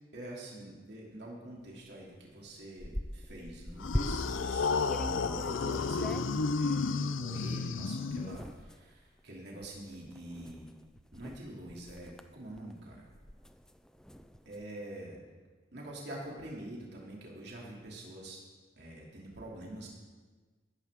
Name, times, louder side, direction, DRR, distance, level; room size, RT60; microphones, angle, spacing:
voice 1, 0.1-10.7 11.1-13.1 14.4-15.2 15.7-18.4 18.8-19.9, right 1 dB, 55° right, -3 dB, 2.8 m, -46 dB
sound 1, 1.9-2.0 2.3-4.5 4.9-6.7 7.4-7.5 8.1-14.6, equal, 5° left, 0.4 m, -42 dB
sound 2, 3.8-8.6, left 4 dB, 80° left, 0.6 m, -32 dB
16.5 x 13.0 x 3.7 m, 1.4 s
head